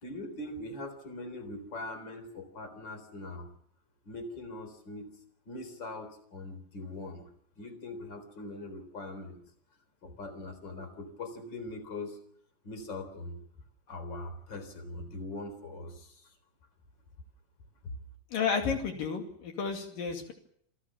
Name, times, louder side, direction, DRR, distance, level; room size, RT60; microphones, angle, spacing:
voice 1, 0.0-3.5 4.0-5.1 5.5-7.3 7.6-9.4 10.0-12.2 12.6-13.4 13.9-16.3, left 2 dB, 30° left, 9 dB, 4.2 m, -41 dB
voice 2, 18.3-20.3, left 6 dB, 75° left, 3 dB, 4.1 m, -32 dB
28.0 x 16.5 x 7.4 m, 0.67 s
omnidirectional pair, 4.0 m